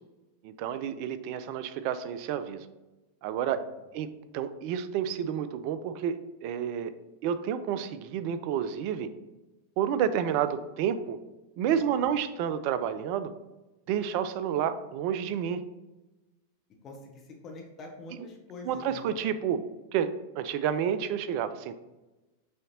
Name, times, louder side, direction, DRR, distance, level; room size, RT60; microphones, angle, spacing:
voice 1, 0.4-2.6 3.2-3.6 3.9-4.1 4.3-6.9 7.2-9.1 9.8-11.2 11.6-13.3 13.9-15.6 18.6-19.6 19.9-20.1 20.4-21.7, right 9 dB, 45° right, 12 dB, 0.3 m, -30 dB
voice 2, 16.8-19.1, left 2 dB, 30° left, 1 dB, 0.8 m, -46 dB
6.3 x 2.7 x 2.7 m, 1.1 s
figure-of-eight pair, 90°, 0 cm